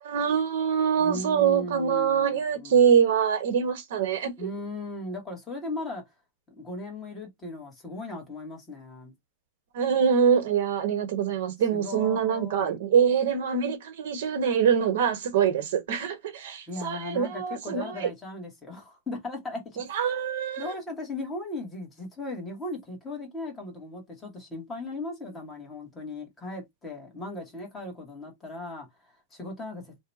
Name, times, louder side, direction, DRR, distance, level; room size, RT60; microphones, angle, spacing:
voice 1, 0.0-4.5 9.7-18.1 19.9-20.6, right 7 dB, 75° right, 1.0 m, -24 dB
voice 2, 1.0-2.8 4.4-6.0 6.5-9.1 11.7-12.8 16.7-20.3 20.6-30.0, left 2 dB, 15° left, 1.1 m, -37 dB
2.8 x 2.2 x 3.9 m
supercardioid pair, 160°, 0 cm